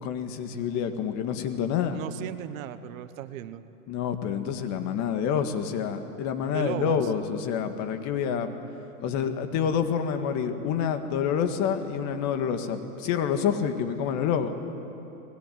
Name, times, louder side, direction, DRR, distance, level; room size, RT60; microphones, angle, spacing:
voice 1, 0.0-2.0 3.9-8.6 9.0-14.6, left 7 dB, 40° left, 7 dB, 1.9 m, -28 dB
voice 2, 1.9-3.6 6.5-7.1, right 12 dB, 60° right, 12 dB, 1.3 m, -36 dB
25.0 x 21.5 x 9.4 m, 3.0 s
hypercardioid pair, 130°, 45 cm